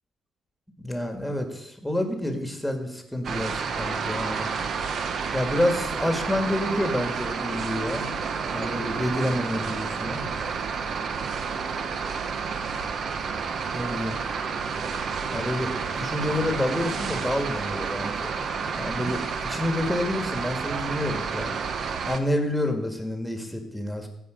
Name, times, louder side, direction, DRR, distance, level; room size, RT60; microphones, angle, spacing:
voice 1, 0.8-4.5 5.3-8.1 8.5-10.2 13.7-14.2 15.3-18.3 18.8-21.5 22.1-24.1, left 1 dB, 5° left, 5 dB, 1.9 m, -28 dB
sound 1, 3.2-22.2, right 5 dB, 60° right, 0.9 m, -30 dB
15.5 x 5.3 x 5.2 m, 0.81 s
cardioid pair, 90°, 0 cm